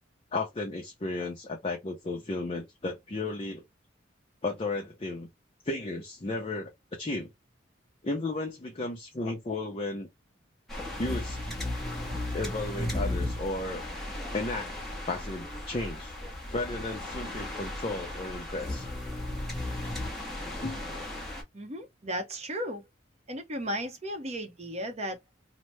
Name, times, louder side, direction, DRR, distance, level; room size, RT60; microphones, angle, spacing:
voice 1, 0.3-3.6 4.4-5.3 5.6-6.7 7.0-7.3 8.0-10.1 11.0-11.4 12.3-13.8 14.3-14.7 15.1-16.2 16.5-18.9 20.6-20.9, left 2 dB, 30° left, 0.6 m, -34 dB
sound 1, 10.7-21.4, left 1 dB, ahead, 0.8 m, -35 dB
voice 2, 21.5-22.8 23.3-25.2, equal, 35° right, 0.7 m, -35 dB
2.9 x 2.1 x 3.1 m
head